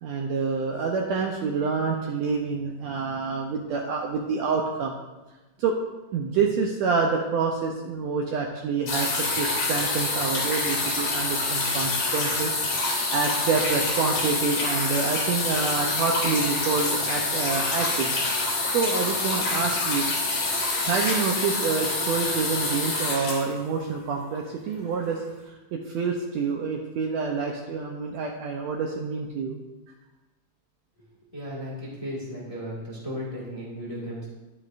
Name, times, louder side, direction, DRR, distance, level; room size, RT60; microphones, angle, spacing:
voice 1, 0.0-5.0 5.6-5.7 6.1-18.1 18.7-20.1 20.8-29.6, right 5 dB, 75° right, 1 dB, 1.7 m, -27 dB
sound 1, 8.9-24.2 25.2-25.3, left 2 dB, 90° left, 4.3 m, -26 dB
voice 2, 31.3-34.3, equal, 15° left, -4 dB, 1.3 m, -35 dB
10.5 x 9.9 x 2.5 m, 1.1 s
omnidirectional pair, 3.7 m